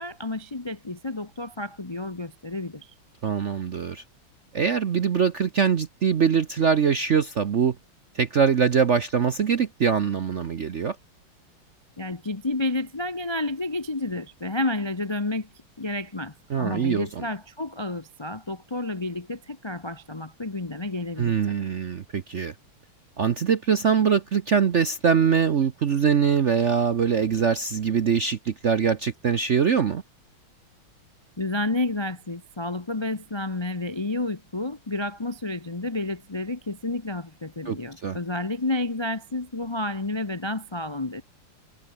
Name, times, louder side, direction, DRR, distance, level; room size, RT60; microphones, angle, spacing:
voice 1, 0.0-2.9 12.0-15.5 15.8-21.6 31.4-41.2, left 2 dB, 45° left, 0.3 m, -30 dB
voice 2, 3.2-4.0 4.5-7.8 8.1-11.0 16.5-17.2 21.2-22.5 23.2-30.0 37.7-38.2, right 7 dB, 55° right, 0.8 m, -23 dB
omnidirectional pair, 2.4 m